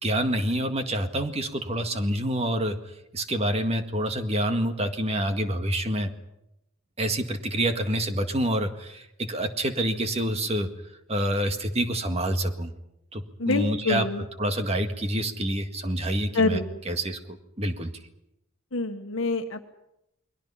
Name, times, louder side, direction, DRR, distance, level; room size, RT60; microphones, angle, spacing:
voice 1, 0.0-2.8 3.1-6.1 7.0-10.7 11.1-12.7 13.1-14.1 14.4-17.9, right 1 dB, 30° right, 7 dB, 1.8 m, -27 dB
voice 2, 13.4-14.2 16.3-16.8 18.7-19.6, left 3 dB, 70° left, 5 dB, 1.4 m, -26 dB
29.0 x 22.0 x 5.7 m, 0.86 s
head